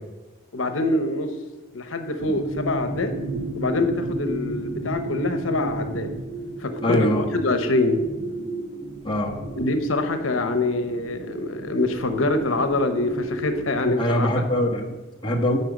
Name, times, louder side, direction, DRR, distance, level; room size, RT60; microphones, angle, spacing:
voice 1, 0.5-1.3 1.7-3.1 3.6-6.1 6.6-8.0 9.6-14.3, left 2 dB, 85° left, 8 dB, 0.9 m, -24 dB
sound 1, 2.2-13.9, right 1 dB, 55° right, 1.9 m, -34 dB
voice 2, 6.8-7.2 9.0-9.3 13.8-15.6, left 1 dB, 25° left, 0 dB, 1.3 m, -23 dB
9.2 x 5.5 x 8.0 m, 1.1 s
head